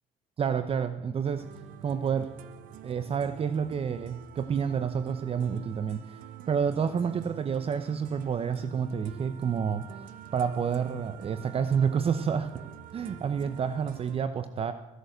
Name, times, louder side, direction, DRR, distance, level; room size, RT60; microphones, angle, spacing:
voice 1, 0.4-1.5 1.8-2.3 2.8-9.9 10.3-12.5 12.9-14.7, right 7 dB, 45° right, 11 dB, 0.8 m, -29 dB
sound 1, 1.4-14.2, right 10 dB, 85° right, 1.0 m, -47 dB
15.5 x 11.5 x 8.0 m, 1.0 s
cardioid pair, 100°, 14 cm